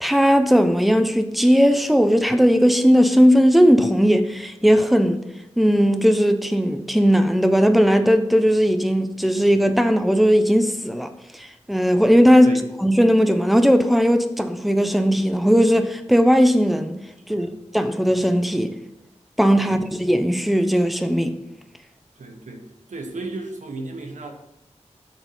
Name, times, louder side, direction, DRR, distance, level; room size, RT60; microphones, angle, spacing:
voice 1, 0.0-5.2 5.6-16.9 17.3-17.5 17.7-18.7 19.4-21.4, equal, ahead, 0.6 m, -17 dB
voice 2, 22.2-22.6 22.9-24.3, right 2 dB, 85° right, 1.0 m, -34 dB
7.0 x 4.0 x 5.5 m
wide cardioid pair, 75°, 12 cm